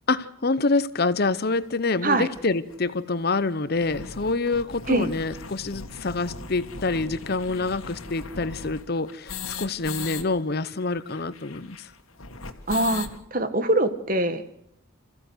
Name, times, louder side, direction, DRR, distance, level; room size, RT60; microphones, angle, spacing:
voice 1, 0.1-11.9, left 3 dB, 50° left, 15 dB, 0.8 m, -26 dB
sound 1, 1.6-1.7 2.3-2.4 2.7-2.8 3.1-3.2 3.6-10.2 10.5-10.6 10.8-13.2, left 4 dB, 85° left, 1.9 m, -38 dB
voice 2, 12.7-14.4, right 2 dB, 40° right, 11 dB, 1.4 m, -23 dB
26.5 x 15.0 x 7.9 m, 0.76 s
head